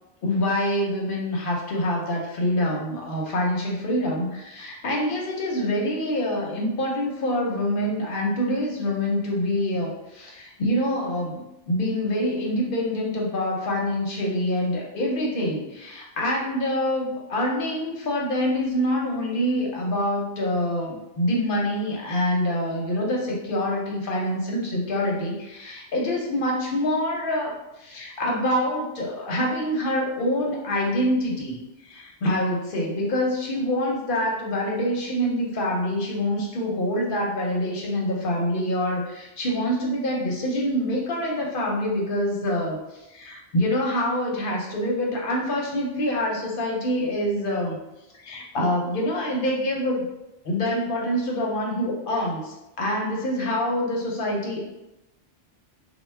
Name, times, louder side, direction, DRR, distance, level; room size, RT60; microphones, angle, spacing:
voice 1, 0.2-31.6 31.8-42.8 43.1-47.8 48.2-50.1 50.4-54.6, left 1 dB, 55° left, -1 dB, 0.7 m, -26 dB
2.2 x 2.0 x 3.2 m, 0.92 s
omnidirectional pair, 1.2 m